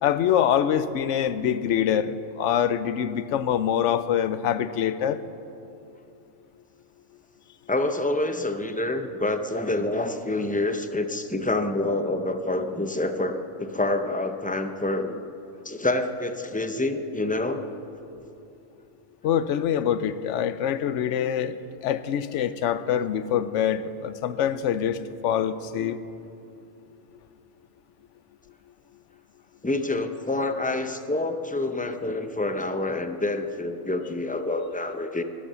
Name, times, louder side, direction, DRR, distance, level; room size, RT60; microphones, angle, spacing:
voice 1, 0.0-5.2 19.2-21.5 21.8-26.0, left 9 dB, 85° left, 14 dB, 0.9 m, -25 dB
voice 2, 7.7-15.2 15.6-17.6 29.6-35.2, left 2 dB, 10° left, 7 dB, 0.4 m, -27 dB
21.0 x 7.5 x 6.8 m, 2.7 s
omnidirectional pair, 1.2 m